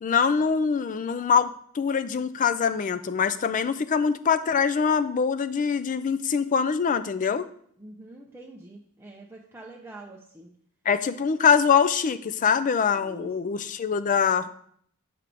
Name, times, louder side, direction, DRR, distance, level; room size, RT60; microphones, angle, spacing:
voice 1, 0.0-7.4 10.9-14.5, left 6 dB, 35° left, 12 dB, 0.4 m, -24 dB
voice 2, 7.8-10.5 12.9-13.6, right 1 dB, 10° right, -2 dB, 0.6 m, -45 dB
8.3 x 5.0 x 3.3 m, 0.64 s
head